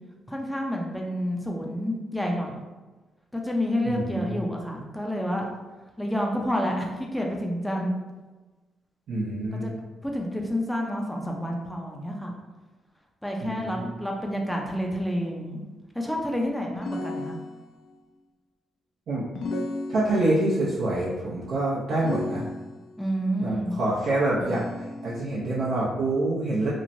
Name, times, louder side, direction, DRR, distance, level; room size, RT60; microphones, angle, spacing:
voice 1, 0.3-2.6 3.3-5.5 6.0-7.9 9.6-9.7 10.0-12.3 13.2-15.6 15.9-17.4 23.0-23.8, equal, 5° left, 0 dB, 0.5 m, -29 dB
voice 2, 3.9-4.4 9.1-9.7 13.4-13.9 19.1-19.2 19.9-22.4 23.4-26.7, right 2 dB, 70° right, -8 dB, 0.6 m, -26 dB
sound 1, 16.8-17.9 19.4-20.5 22.0-23.0 24.4-25.4, left 2 dB, 80° left, 0.3 m, -34 dB
3.0 x 2.1 x 2.6 m, 1.2 s
cardioid pair, 75°, 0 cm